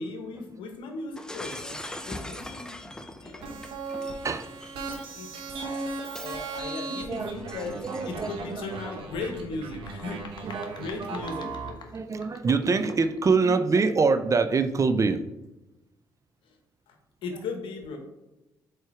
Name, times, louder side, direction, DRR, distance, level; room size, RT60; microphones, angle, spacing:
voice 1, 0.0-1.8 2.0-2.8 3.2-4.3 4.7-4.8 5.1-11.8 16.4-16.6 16.9-18.0, left 3 dB, 80° left, 4 dB, 1.2 m, -38 dB
Shatter, 1.2-8.5, left 1 dB, 10° left, 0.6 m, -42 dB
sound 1, 3.4-11.7, right 4 dB, 75° right, 1.1 m, -37 dB
voice 2, 6.9-7.5 7.8-8.3 8.6-8.7 10.5-11.1 11.4-11.6 11.9-15.3, right 4 dB, 35° right, 10 dB, 0.5 m, -25 dB
sound 2, 9.6-13.2, left 5 dB, 60° left, 1.0 m, -48 dB
4.6 x 4.5 x 4.7 m, 1.0 s
supercardioid pair, 70°, 9 cm